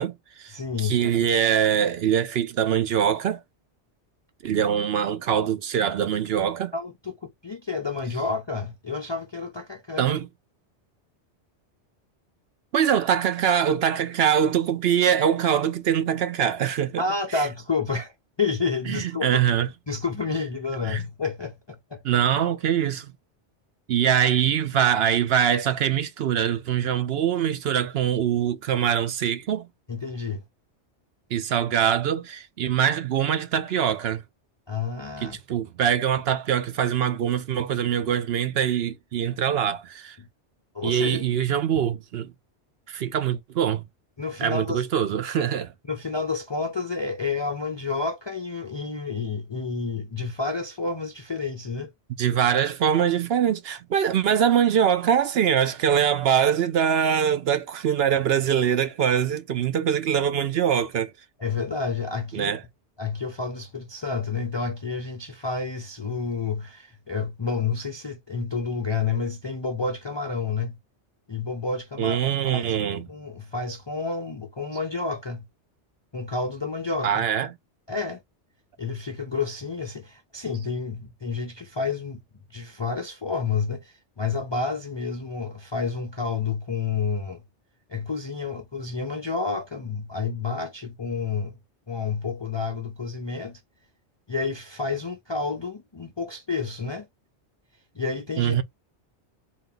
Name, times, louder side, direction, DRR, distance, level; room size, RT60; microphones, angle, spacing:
voice 1, 0.0-0.5 0.8-3.4 4.4-6.7 10.0-10.3 12.7-17.0 17.3-17.4 18.9-19.7 20.9-21.0 22.0-23.1 23.9-29.7 31.3-34.2 35.2-40.2 40.8-42.3 42.9-43.8 44.4-45.7 52.2-61.1 62.3-62.6 72.0-73.1 77.0-77.5 98.4-98.6, right 9 dB, 65° right, 0.8 m, -23 dB
voice 2, 0.5-1.2 6.7-10.1 17.0-19.3 19.9-22.2 29.9-30.4 34.7-35.4 40.2-40.3 40.7-41.2 44.2-44.8 45.3-45.4 45.9-51.9 61.4-62.5 63.0-70.8 71.3-72.7 73.1-75.4 76.1-77.2 77.9-78.2 78.8-82.2 82.5-87.4 87.9-91.5 91.9-93.6 94.3-97.1 97.9-98.5, left 4 dB, 40° left, 0.4 m, -30 dB
4.1 x 2.3 x 3.7 m
omnidirectional pair, 1.2 m